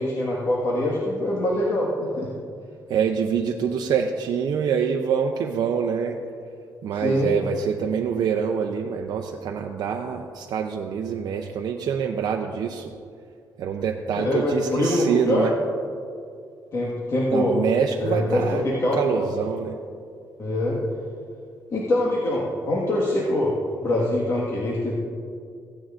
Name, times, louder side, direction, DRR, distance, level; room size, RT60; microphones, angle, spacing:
voice 1, 0.0-2.3 6.9-7.3 14.1-15.5 16.7-17.6 18.0-19.3 20.4-20.8 21.7-23.6 23.8-24.9, left 1 dB, 40° left, -5 dB, 1.6 m, -24 dB
voice 2, 2.9-6.2 6.8-12.9 13.6-15.5 17.3-19.8, right 7 dB, 70° right, 2 dB, 0.6 m, -25 dB
15.5 x 9.7 x 2.5 m, 2.3 s
cardioid pair, 120°, 7 cm